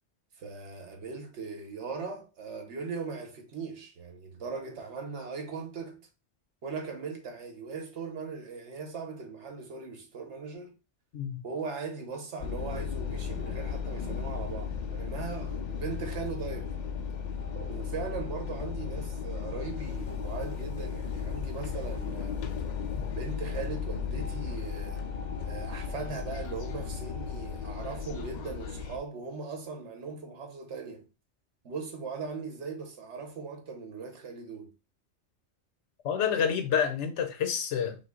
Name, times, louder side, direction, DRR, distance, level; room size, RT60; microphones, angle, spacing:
voice 1, 0.4-6.0 6.6-10.8 11.4-16.7 17.5-22.4 23.1-25.0 25.4-31.0 31.6-34.7, right 5 dB, 80° right, 1.3 m, -39 dB
sound 1, 12.4-29.0, left 6 dB, 55° left, 0.5 m, -35 dB
voice 2, 36.0-38.0, left 7 dB, 85° left, 1.1 m, -28 dB
5.6 x 2.0 x 3.7 m
omnidirectional pair, 1.2 m